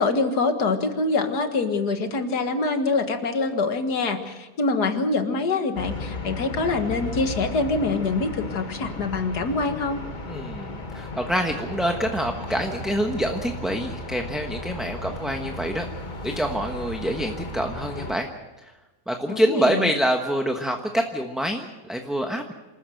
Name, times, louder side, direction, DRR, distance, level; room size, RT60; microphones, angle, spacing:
voice 1, 0.0-10.0 19.3-19.9, left 3 dB, 85° left, 7 dB, 2.2 m, -25 dB
sound 1, 5.7-18.2, left 2 dB, 30° left, 1.3 m, -35 dB
voice 2, 10.2-15.9 16.2-18.3 18.6-18.7 19.1-22.5, equal, ahead, 3 dB, 1.0 m, -26 dB
27.0 x 14.0 x 7.8 m, 1.1 s
omnidirectional pair, 1.7 m